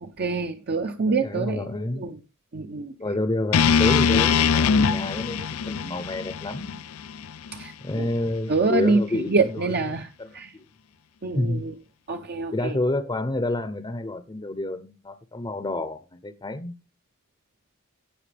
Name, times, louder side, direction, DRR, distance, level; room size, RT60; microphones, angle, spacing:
voice 1, 0.0-1.7 2.0-2.2 2.5-2.9 7.5-8.1 8.5-10.1 10.3-10.5 11.2-11.7 12.1-12.8, right 4 dB, 50° right, 0.7 m, -26 dB
voice 2, 1.2-2.1 3.0-6.8 7.8-9.8 10.2-10.5 11.3-11.6 12.5-16.7, left 2 dB, 20° left, 0.7 m, -29 dB
sound 1, 3.5-7.7, left 6 dB, 80° left, 0.5 m, -22 dB
17.5 x 5.9 x 3.4 m
head